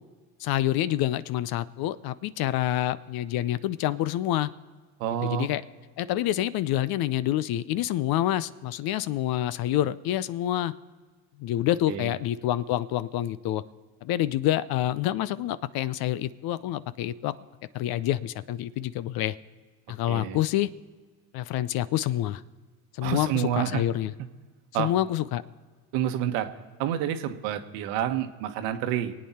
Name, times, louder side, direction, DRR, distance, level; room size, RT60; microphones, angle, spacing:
voice 1, 0.4-4.5 5.2-5.6 6.0-10.7 11.4-13.6 14.0-17.3 17.7-19.4 19.9-20.7 21.3-22.4 22.9-24.1 24.8-25.4, left 13 dB, 55° left, 16 dB, 0.7 m, -27 dB
voice 2, 5.0-5.5 11.9-12.1 20.1-20.4 23.0-23.9 24.7-24.9 25.9-26.5 26.8-29.1, right 10 dB, 70° right, 8 dB, 1.3 m, -28 dB
24.0 x 8.8 x 4.3 m, 1.4 s
supercardioid pair, 90°, 45 cm